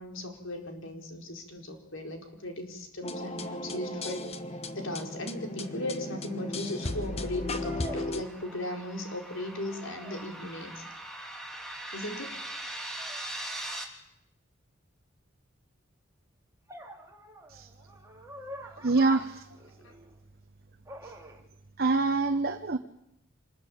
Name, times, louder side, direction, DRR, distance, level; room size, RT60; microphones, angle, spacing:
voice 1, 0.0-4.2 4.7-10.8 11.9-12.3 12.6-12.7, left 1 dB, 75° left, 4 dB, 4.7 m, -37 dB
sound 1, 3.0-8.2, left 2 dB, 30° left, 1.2 m, -36 dB
sound 2, 6.1-13.8, right 1 dB, 5° left, 3.2 m, -42 dB
sound 3, 7.6-8.9 9.2-10.3 13.0-13.3 16.7-20.2 20.8-21.4, right 1 dB, 15° right, 3.0 m, -46 dB
voice 2, 18.8-19.4 21.0-21.1 21.8-22.8, right 3 dB, 50° right, 5 dB, 1.1 m, -25 dB
26.0 x 20.5 x 8.7 m, 0.83 s
head